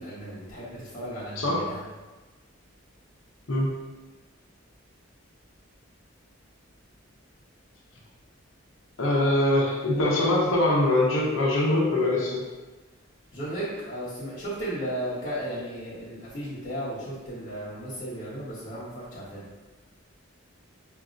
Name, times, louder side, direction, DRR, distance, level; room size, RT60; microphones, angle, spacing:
voice 1, 0.0-1.8 13.3-19.5, right 1 dB, 35° left, -13 dB, 1.1 m, -35 dB
voice 2, 1.4-1.7 3.5-3.7 9.0-12.4, left 1 dB, 75° left, -4 dB, 0.9 m, -23 dB
5.1 x 2.8 x 2.5 m, 1.2 s
head